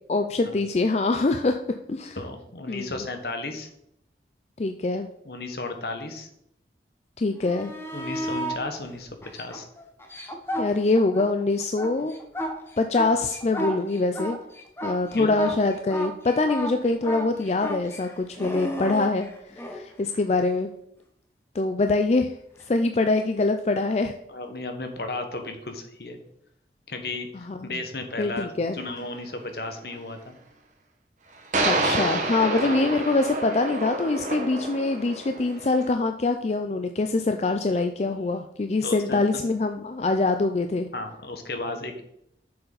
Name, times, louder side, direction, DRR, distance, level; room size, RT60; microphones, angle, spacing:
voice 1, 0.1-1.6 1.9-2.2 2.7-3.0 4.6-5.1 7.2-7.7 10.6-12.1 12.8-14.4 14.8-19.3 19.5-20.7 21.5-22.3 22.7-24.1 27.5-27.8 28.2-28.8 31.6-40.9, left 3 dB, 40° left, 6 dB, 0.4 m, -24 dB
voice 2, 2.1-3.7 5.2-6.3 7.9-9.7 15.1-15.3 24.3-26.2 26.9-28.5 28.7-30.3 32.6-32.8 38.8-39.2 40.9-42.0, left 2 dB, 65° left, 6 dB, 1.3 m, -34 dB
sound 1, 7.4-8.6 9.2-11.3 11.6-19.8 22.6-22.7, equal, 15° left, 1.0 m, -33 dB
sound 2, 28.8-28.9 31.5-35.9, right 2 dB, 45° right, 1.3 m, -28 dB
7.8 x 6.8 x 4.0 m, 0.75 s
head